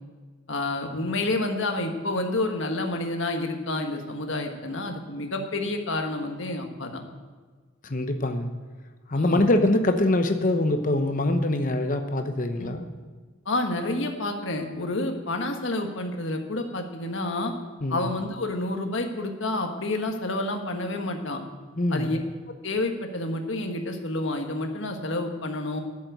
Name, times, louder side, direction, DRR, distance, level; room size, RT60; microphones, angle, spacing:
voice 1, 0.5-7.0 9.1-9.5 12.6-12.7 13.4-17.5 17.9-21.4 21.9-22.2 22.5-25.8, left 2 dB, 60° left, 4 dB, 1.5 m, -29 dB
voice 2, 7.8-8.5 9.1-12.9 17.8-18.1 21.8-22.1, left 1 dB, 40° left, 6 dB, 0.9 m, -24 dB
12.0 x 7.7 x 7.8 m, 1.5 s
head